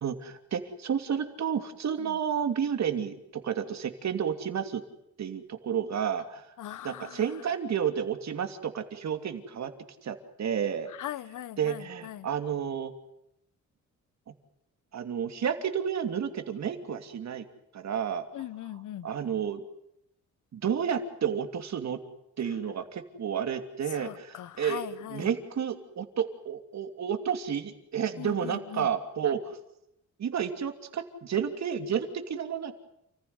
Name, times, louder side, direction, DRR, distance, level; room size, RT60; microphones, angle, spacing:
voice 1, 0.0-4.8 5.2-6.5 6.8-9.7 10.0-10.9 11.6-12.9 14.3-14.4 14.9-17.4 17.7-18.3 19.0-19.6 20.5-22.0 22.4-29.6 30.2-32.7, right 8 dB, 60° right, 8 dB, 2.9 m, -31 dB
voice 2, 6.6-7.3 10.9-12.3 18.3-19.1 23.9-25.3 28.2-28.9, left 12 dB, 80° left, 17 dB, 1.1 m, -40 dB
29.0 x 15.0 x 9.6 m, 0.78 s
cardioid pair, 95°, 30 cm